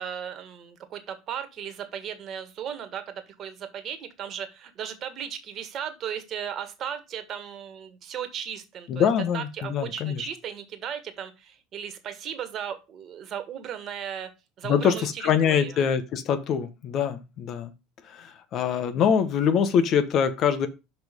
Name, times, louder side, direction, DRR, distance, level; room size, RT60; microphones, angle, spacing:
voice 1, 0.0-9.1 9.3-14.3 14.6-15.8, right 8 dB, 45° right, 9 dB, 1.7 m, -36 dB
voice 2, 8.9-10.2 14.6-17.7 18.1-20.7, left 7 dB, 50° left, 10 dB, 1.3 m, -24 dB
6.0 x 5.4 x 5.2 m, 0.26 s
hypercardioid pair, 75°, 0 cm